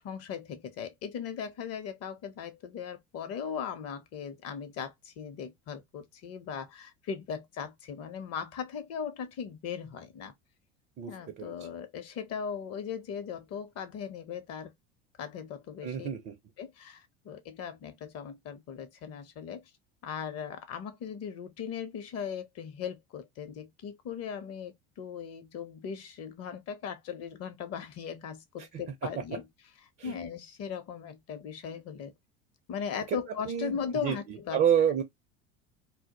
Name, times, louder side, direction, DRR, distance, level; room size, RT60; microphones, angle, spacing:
voice 1, 0.0-10.3 11.1-14.7 15.2-16.1 16.6-19.6 20.0-29.5 30.0-32.1 32.7-34.6, left 7 dB, 40° left, 0.6 m, -38 dB
voice 2, 11.0-11.5 15.8-16.4 30.0-30.1 33.5-33.7 34.0-34.2 34.5-35.0, right 9 dB, 30° right, 0.4 m, -27 dB
2.1 x 2.1 x 2.8 m
hypercardioid pair, 80°, 38 cm